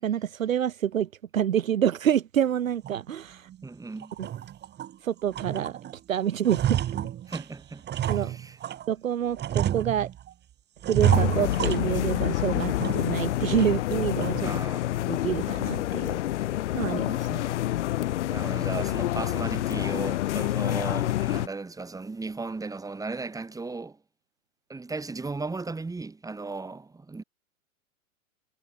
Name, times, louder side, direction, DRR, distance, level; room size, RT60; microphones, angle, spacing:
voice 1, 0.0-3.5 4.2-4.3 5.0-5.8 6.1-6.8 8.1-8.4 8.9-10.1 10.9-14.5 15.1-16.2 16.7-17.4, right 10 dB, 70° right, 1.3 m, -27 dB
sound 1, 2.8-3.0 3.5-3.6 4.0-5.0 5.3-6.0 6.2-8.9 9.4-10.3 10.8-12.3 12.6-13.2 13.6-13.7 14.2-14.6, right 11 dB, 25° right, 3.5 m, -29 dB
voice 2, 3.6-4.2 7.3-8.8 14.4-14.9 17.3-17.5 18.3-24.0 24.7-27.2, right 3 dB, 10° right, 4.6 m, -36 dB
sound 2, 11.0-21.5, left 14 dB, 55° left, 1.4 m, -28 dB
figure-of-eight pair, 105°, 41 cm